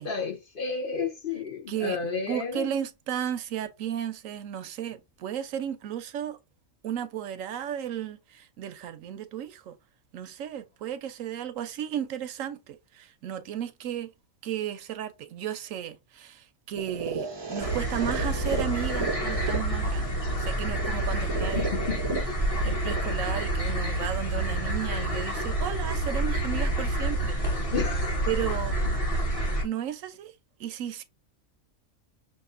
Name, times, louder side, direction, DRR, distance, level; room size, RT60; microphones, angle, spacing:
voice 1, 0.0-2.7 21.6-22.3 27.7-28.1 28.9-29.0, left 5 dB, 45° left, 0.9 m, -32 dB
voice 2, 1.7-6.4 6.8-9.8 10.1-14.1 14.4-21.8 22.6-27.7 28.3-28.8 29.6-30.3 30.6-31.0, right 10 dB, 75° right, 1.0 m, -34 dB
sound 1, 16.8-24.8, right 3 dB, 30° right, 0.5 m, -35 dB
sound 2, 17.6-29.6, right 1 dB, 25° left, 1.5 m, -28 dB
sound 3, 24.5-29.6, left 3 dB, 70° left, 1.7 m, -49 dB
6.2 x 2.6 x 2.5 m
omnidirectional pair, 1.4 m